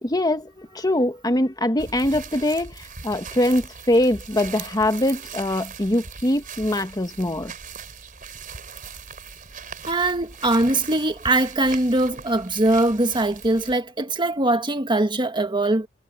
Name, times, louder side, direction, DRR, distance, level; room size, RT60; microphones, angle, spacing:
voice 1, 0.0-7.5, left 1 dB, 20° left, 1.4 m, -23 dB
sound 1, 1.8-13.7, right 5 dB, 45° right, 4.4 m, -40 dB
voice 2, 9.9-15.9, right 2 dB, 25° right, 1.6 m, -21 dB
head